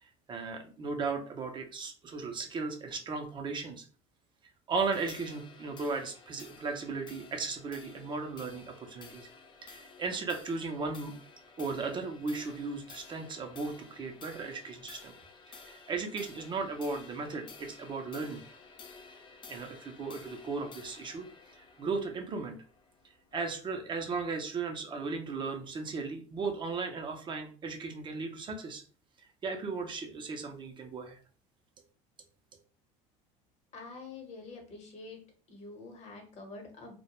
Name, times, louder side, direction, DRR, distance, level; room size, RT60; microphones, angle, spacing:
voice 1, 0.0-3.8 4.7-9.3 9.6-11.1 11.6-15.1 15.5-18.4 19.5-21.3 21.5-22.6 23.3-28.8 29.4-31.2, right 4 dB, 30° right, 4 dB, 0.5 m, -36 dB
sound 1, 4.8-23.4, left 4 dB, 30° left, 0.4 m, -53 dB
voice 2, 33.7-35.2 35.5-37.0, left 3 dB, 45° left, 3 dB, 0.9 m, -46 dB
2.2 x 2.1 x 2.9 m, 0.40 s
supercardioid pair, 110°, 15 cm